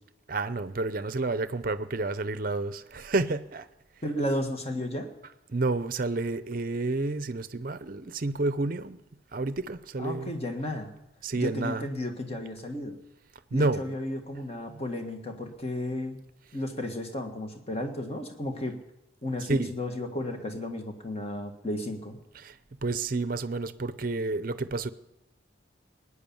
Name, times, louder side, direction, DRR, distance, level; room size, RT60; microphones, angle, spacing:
voice 1, 0.3-3.7 5.2-9.0 9.3-10.3 11.2-12.0 12.3-12.4 13.5-14.0 14.7-14.8 19.5-19.8 22.3-24.9, right 3 dB, 45° right, 0.6 m, -30 dB
voice 2, 4.0-5.1 10.0-10.9 11.4-13.0 13.5-16.2 16.5-18.8 19.2-22.2, left 1 dB, 30° left, 1.6 m, -33 dB
19.5 x 9.8 x 7.2 m
head